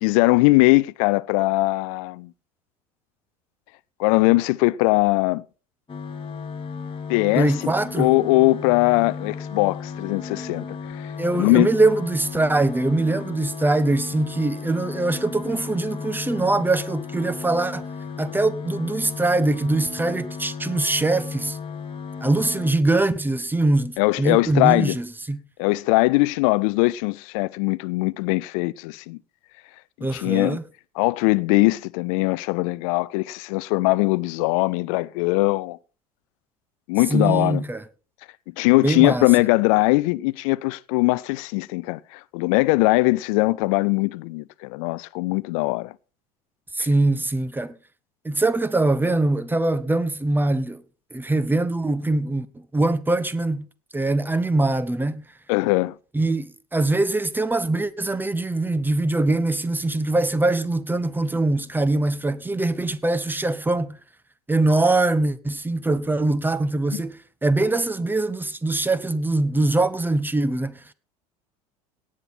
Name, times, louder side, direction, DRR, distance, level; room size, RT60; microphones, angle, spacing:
voice 1, 0.0-2.3 4.0-5.4 7.1-7.5 8.0-11.1 11.3-11.7 24.0-25.0 25.6-29.2 30.1-30.6 31.0-35.8 36.9-37.6 38.6-45.9 46.8-46.9 55.5-55.9 66.9-67.0, left 23 dB, 60° left, 0.5 m, -21 dB
sound 1, 5.9-22.7, left 5 dB, 25° left, 2.4 m, -35 dB
voice 2, 7.3-8.1 11.2-17.9 18.2-21.6 22.2-25.4 30.0-30.6 37.1-37.8 38.8-39.3 46.7-47.8 48.2-50.8 51.1-53.7 53.9-55.3 56.1-64.0 64.5-70.9, right 2 dB, 10° right, 1.1 m, -23 dB
17.5 x 8.7 x 4.4 m
hypercardioid pair, 75°, 19 cm